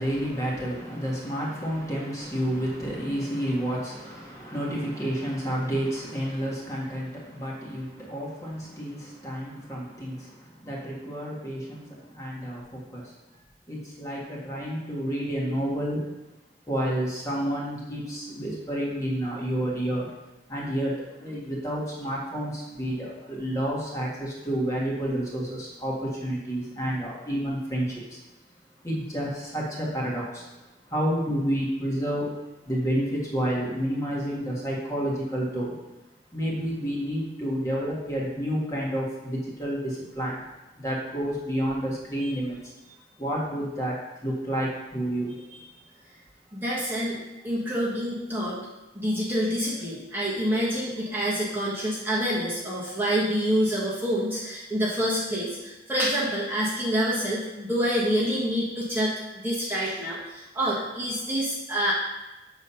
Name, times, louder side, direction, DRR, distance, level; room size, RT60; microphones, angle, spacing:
voice 1, 0.0-13.1 13.7-16.1 16.7-20.1 20.5-28.2 28.8-32.3 32.6-35.8 36.3-40.4 40.8-42.7 43.2-45.3, equal, 20° left, -5 dB, 1.8 m, -30 dB
voice 2, 46.5-48.6 48.9-61.9, equal, 10° right, -7 dB, 1.3 m, -27 dB
7.1 x 4.0 x 5.6 m, 1.0 s
head